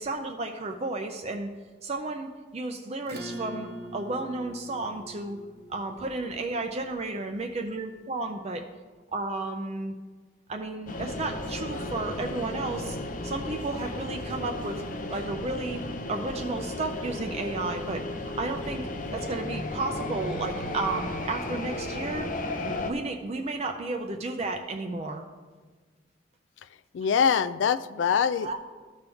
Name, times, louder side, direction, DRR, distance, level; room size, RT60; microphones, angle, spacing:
voice 1, 0.0-1.5 1.8-5.4 5.7-8.6 9.1-9.9 10.5-13.0 13.2-14.8 15.1-22.3 22.6-25.2 28.4-28.6, right 2 dB, 35° right, 4 dB, 0.5 m, -33 dB
Acoustic guitar / Strum, 3.0-8.0, right 1 dB, 60° right, 0.8 m, -43 dB
sound 1, 10.9-22.9, left 2 dB, 45° left, 0.7 m, -34 dB
voice 2, 26.9-28.6, left 7 dB, 80° left, 15 dB, 0.3 m, -24 dB
14.0 x 5.3 x 3.5 m, 1.4 s
head